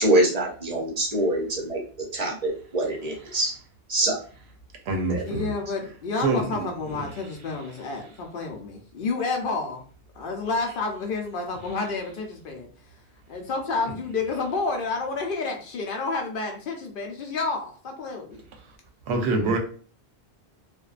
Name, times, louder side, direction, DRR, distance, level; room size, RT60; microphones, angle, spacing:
voice 1, 0.0-1.8 2.1-3.5 3.9-4.2 5.1-5.2, right 1 dB, 45° right, 0.7 m, -24 dB
voice 2, 3.1-3.4 4.9-5.5 6.2-7.1 19.1-19.6, right 3 dB, 85° right, 0.9 m, -27 dB
voice 3, 5.2-9.8 10.2-12.7 13.3-18.4, left 3 dB, 60° left, 0.7 m, -30 dB
2.6 x 2.2 x 2.4 m
omnidirectional pair, 1.1 m